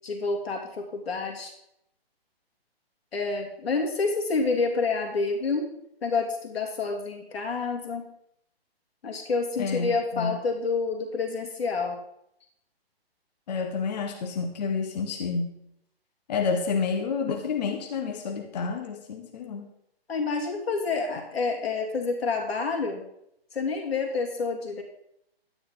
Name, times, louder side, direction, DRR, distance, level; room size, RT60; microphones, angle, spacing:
voice 1, 0.0-1.5 3.1-5.7 6.0-8.1 9.0-12.0 20.1-23.0 23.5-24.8, left 4 dB, 75° left, 2 dB, 2.9 m, -28 dB
voice 2, 9.6-10.4 13.5-15.5 16.3-19.7, left 5 dB, 40° left, 3 dB, 1.3 m, -29 dB
12.0 x 9.8 x 3.9 m, 0.76 s
hypercardioid pair, 155°, 31 cm